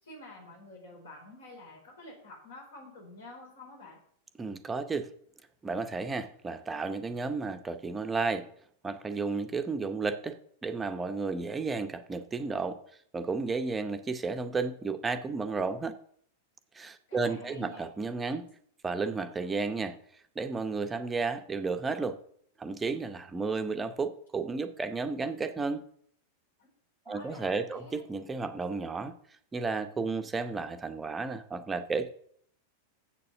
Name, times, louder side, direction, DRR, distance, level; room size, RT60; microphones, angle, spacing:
voice 1, 0.0-4.0 17.1-17.9 26.6-26.7 27.0-28.0, left 2 dB, 65° left, 0 dB, 4.3 m, -49 dB
voice 2, 4.4-5.1 5.6-8.5 8.8-12.8 13.1-16.0 16.7-18.5 18.8-20.0 20.4-22.2 22.6-25.8 27.1-29.1 29.5-32.1, right 4 dB, 15° right, 9 dB, 0.8 m, -32 dB
7.7 x 6.8 x 6.6 m, 0.64 s
figure-of-eight pair, 90°, 0 cm